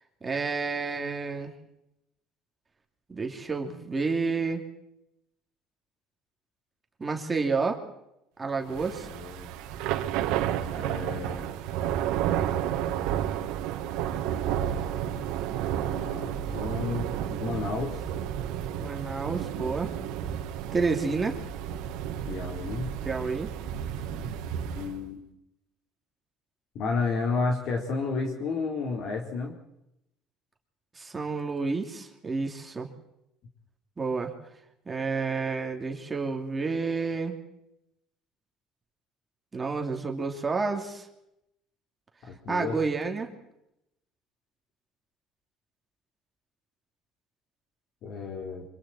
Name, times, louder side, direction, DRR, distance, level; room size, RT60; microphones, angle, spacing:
voice 1, 0.2-1.5 3.1-4.6 7.0-7.8 8.4-9.1 18.8-19.9 20.7-21.4 23.0-23.5 31.0-32.9 34.0-34.3 34.9-37.3 39.5-41.1 42.5-43.3, right 4 dB, 20° right, 2 dB, 2.9 m, -30 dB
voice 2, 8.7-9.5 10.7-11.5 15.8-17.0 17.3-18.0 22.3-22.9 24.1-24.3 24.7-25.2 26.7-29.5 42.2-42.8 48.0-48.6, left 4 dB, 55° left, 1 dB, 4.0 m, -32 dB
Thunder / Rain, 8.7-25.0, right 10 dB, 85° right, 2.1 m, -31 dB
27.0 x 25.5 x 4.4 m, 0.83 s
cardioid pair, 140°, 0 cm